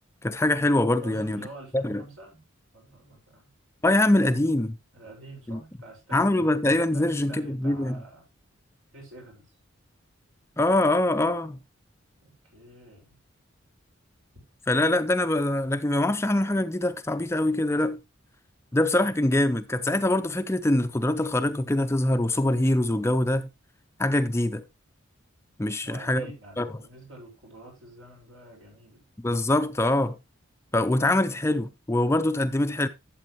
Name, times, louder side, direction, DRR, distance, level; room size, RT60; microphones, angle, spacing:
voice 1, 0.2-1.5 1.7-2.0 3.8-4.8 5.5-5.6 6.1-8.0 10.6-11.6 14.7-18.0 18.7-23.5 24.0-24.6 25.6-26.3 26.6-26.7 29.2-30.2 30.7-32.9, left 1 dB, 15° left, 0.4 m, -24 dB
voice 2, 1.0-2.4 2.7-3.5 4.9-6.3 6.9-8.3 8.9-9.5 12.2-13.2 25.8-29.0, right 2 dB, 75° right, 5.3 m, -47 dB
12.0 x 7.7 x 3.0 m
head